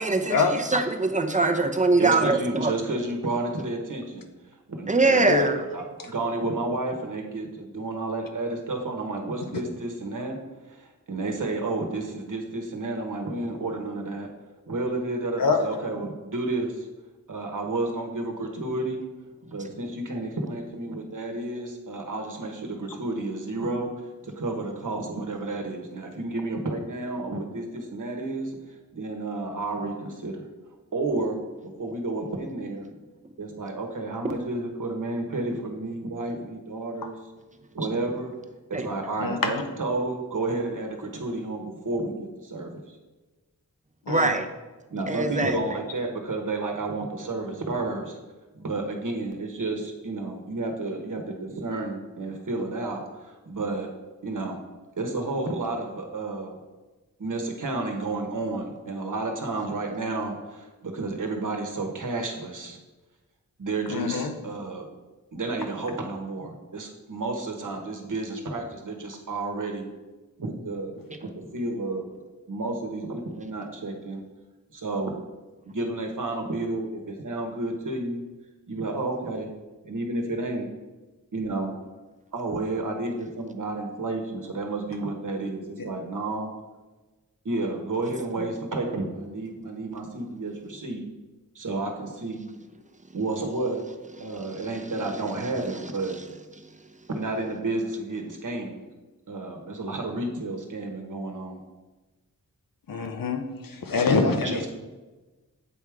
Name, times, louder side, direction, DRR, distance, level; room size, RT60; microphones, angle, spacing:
voice 1, 0.0-2.7 4.9-5.7 38.7-38.9 44.1-44.5 45.1-45.8, right 3 dB, 25° right, 6 dB, 0.7 m, -23 dB
voice 2, 2.0-4.3 4.7-10.4 10.7-14.3 14.7-16.9 17.3-19.0 19.4-23.9 24.2-30.5 30.9-33.0 33.4-37.2 37.7-38.3 38.7-43.0 44.9-48.2 48.5-53.9 54.2-54.6 55.0-56.6 57.2-62.8 63.6-64.9 65.3-69.9 70.4-72.1 72.5-74.2 74.7-75.2 75.7-78.2 78.7-79.5 79.8-80.7 81.3-81.8 82.3-86.5 87.4-91.1 91.5-92.5 93.1-93.8 94.2-96.1 97.1-98.8 99.3-101.6 104.4-104.7, right 2 dB, 65° right, 2 dB, 1.1 m, -31 dB
voice 3, 5.1-5.6 15.4-15.6 39.2-39.5 44.1-44.3 63.9-64.3 102.9-104.7, left 4 dB, 85° left, 5 dB, 0.8 m, -25 dB
8.0 x 3.5 x 4.7 m, 1.2 s
wide cardioid pair, 60°, 33 cm